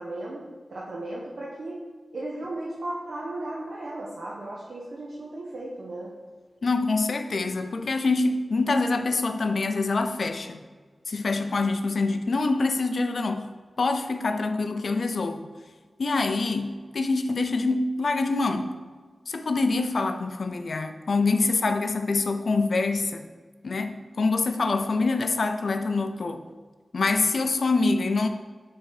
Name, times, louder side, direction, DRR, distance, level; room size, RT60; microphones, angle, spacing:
voice 1, 0.0-1.8 2.1-6.1, right 1 dB, 70° right, -5 dB, 0.7 m, -35 dB
voice 2, 6.6-10.6 11.1-13.5 13.8-15.5 16.0-18.7 19.3-23.3 23.6-26.4 26.9-28.3, left 3 dB, 65° left, 7 dB, 0.3 m, -25 dB
3.8 x 3.2 x 4.3 m, 1.5 s
wide cardioid pair, 120°, 0 cm